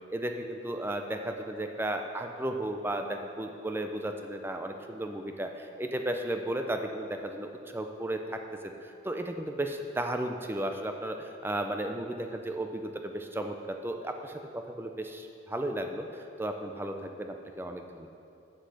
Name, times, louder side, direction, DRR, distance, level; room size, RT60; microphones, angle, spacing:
voice 1, 0.1-18.1, right 1 dB, 10° right, 5 dB, 0.4 m, -34 dB
7.7 x 6.5 x 6.2 m, 2.7 s
head